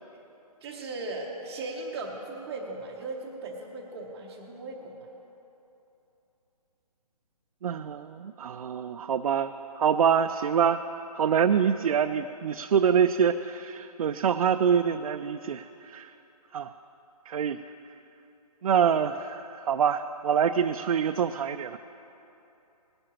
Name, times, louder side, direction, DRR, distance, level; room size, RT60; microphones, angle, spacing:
voice 1, 0.6-5.1, right 2 dB, 10° right, -8 dB, 0.7 m, -37 dB
voice 2, 7.6-10.8 11.1-16.1 16.5-16.7 17.3-17.6 18.6-21.8, right 7 dB, 65° right, 7 dB, 0.4 m, -25 dB
19.0 x 12.0 x 3.0 m, 3.0 s
hypercardioid pair, 160°, 20 cm